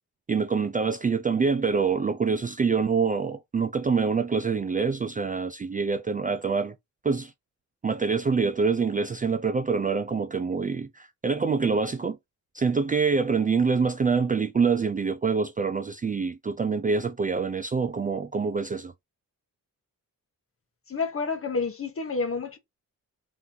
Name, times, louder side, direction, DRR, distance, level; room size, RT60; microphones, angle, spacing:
voice 1, 0.3-6.7 7.0-7.3 7.8-12.2 12.5-18.9, right 5 dB, 25° right, 0.4 m, -25 dB
voice 2, 20.9-22.6, left 4 dB, 40° left, 1.3 m, -29 dB
3.2 x 3.0 x 3.9 m
cardioid pair, 115°, 34 cm